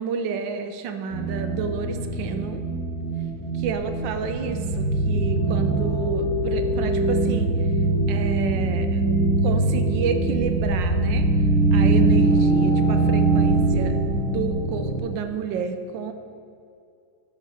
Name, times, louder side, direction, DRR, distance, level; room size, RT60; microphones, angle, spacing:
voice 1, 0.0-2.6 3.6-7.5 8.1-9.0 9.4-11.3 11.7-16.1, right 6 dB, 65° right, 7 dB, 1.4 m, -30 dB
sound 1, 1.1-15.0, right 2 dB, 35° left, 2.4 m, -22 dB
11.0 x 6.9 x 5.7 m, 2.5 s
omnidirectional pair, 2.4 m